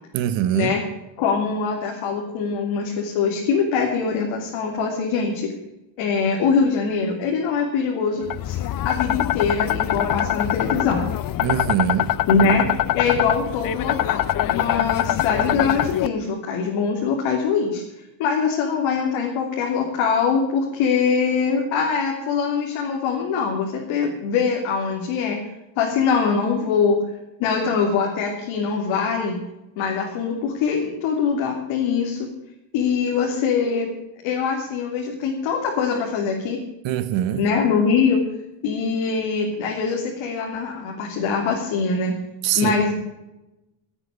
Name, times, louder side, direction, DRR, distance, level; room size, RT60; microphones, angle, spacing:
voice 1, 0.1-0.7 11.4-12.1 36.8-37.4 42.4-42.7, right 11 dB, 70° right, 1.3 m, -22 dB
voice 2, 1.2-5.5 6.0-8.6 8.8-11.0 12.3-17.8 18.2-25.4 25.8-27.0 27.4-29.4 29.8-32.3 32.7-33.9 34.2-36.6 37.3-38.2 38.6-42.2 42.6-42.9, left 5 dB, 85° left, 3.2 m, -23 dB
sound 1, 8.3-16.1, left 12 dB, 45° left, 0.7 m, -23 dB
17.0 x 8.9 x 6.9 m
cardioid pair, 125°, 46 cm